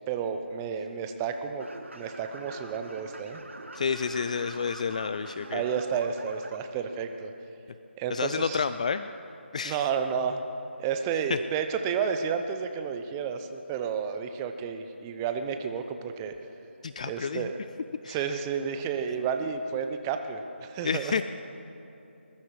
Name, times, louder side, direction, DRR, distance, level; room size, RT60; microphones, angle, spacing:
voice 1, 0.1-1.7 1.9-3.4 5.5-7.3 8.0-8.7 9.6-10.4 10.8-16.3 17.0-17.5 18.1-21.2, right 7 dB, 15° right, 7 dB, 0.7 m, -31 dB
sound 1, 1.6-6.6, right 2 dB, 75° right, 1.4 m, -44 dB
voice 2, 3.8-5.6 8.1-9.1 9.5-9.8 11.3-11.4 16.8-17.5 18.0-18.2 20.8-21.2, left 6 dB, 35° left, 12 dB, 0.3 m, -29 dB
20.5 x 13.0 x 4.7 m, 2.9 s
figure-of-eight pair, 160°, 7 cm